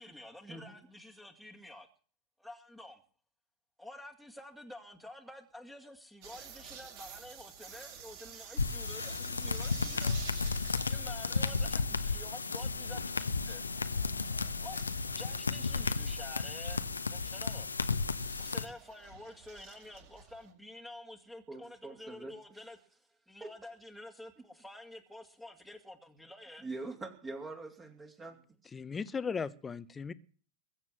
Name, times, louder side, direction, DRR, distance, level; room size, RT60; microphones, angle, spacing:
voice 1, 0.0-1.9 2.4-3.0 3.8-10.2 10.9-13.6 14.6-14.8 15.2-17.7 18.4-22.8 23.3-26.7, left 1 dB, ahead, 2.1 m, -49 dB
sound 1, 6.2-20.5, right 7 dB, 50° right, 6.1 m, -52 dB
sound 2, 8.6-18.7, left 4 dB, 75° left, 1.1 m, -33 dB
voice 2, 21.5-22.3 23.4-23.5 26.6-28.4, right 3 dB, 20° right, 2.8 m, -43 dB
voice 3, 28.7-30.1, left 5 dB, 15° left, 1.0 m, -37 dB
21.5 x 7.5 x 7.7 m
figure-of-eight pair, 90°, 0 cm